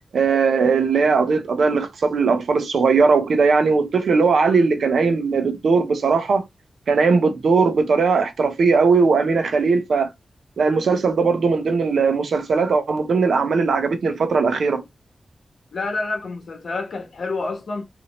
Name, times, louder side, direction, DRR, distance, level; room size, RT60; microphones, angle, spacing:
voice 1, 0.1-6.4 6.9-10.1 10.6-14.8, right 4 dB, 85° right, 0.9 m, -19 dB
voice 2, 15.7-17.9, left 3 dB, 60° left, 1.2 m, -28 dB
5.8 x 2.8 x 3.1 m
wide cardioid pair, 155°, 0 cm